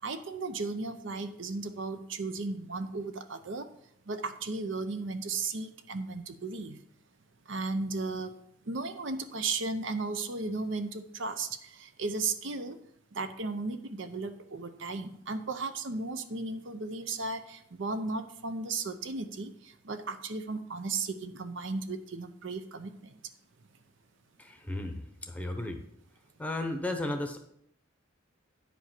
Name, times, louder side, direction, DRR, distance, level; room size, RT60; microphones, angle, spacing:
voice 1, 0.0-3.7 4.1-6.8 7.5-8.3 8.7-12.8 13.1-22.9, right 3 dB, 60° right, 9 dB, 0.7 m, -35 dB
voice 2, 24.4-25.8 26.4-27.4, left 1 dB, 5° left, 5 dB, 0.8 m, -34 dB
9.2 x 5.1 x 5.9 m, 0.72 s
head